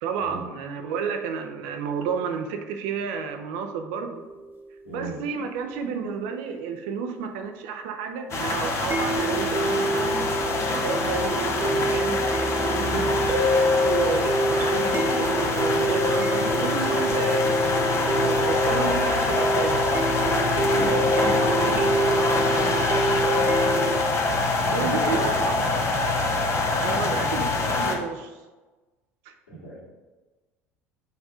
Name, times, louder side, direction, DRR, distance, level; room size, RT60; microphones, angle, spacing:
voice 1, 0.0-4.2 4.9-10.2 10.7-12.2 13.8-17.5 18.0-19.8 21.2-22.7 24.7-25.9 26.8-28.3 29.3-29.4, right 6 dB, 65° right, 6 dB, 0.7 m, -31 dB
sound 1, 4.2-4.3 8.9-24.0, right 1 dB, 30° right, 1.1 m, -25 dB
voice 2, 4.8-5.2 12.7-13.0 20.5-21.7 24.4-25.0 26.9-27.3 29.5-29.8, right 1 dB, 80° left, -4 dB, 2.0 m, -35 dB
sound 2, 8.3-28.0, left 3 dB, 40° left, 1.0 m, -25 dB
6.5 x 3.5 x 4.9 m, 1.2 s
figure-of-eight pair, 65°, 7 cm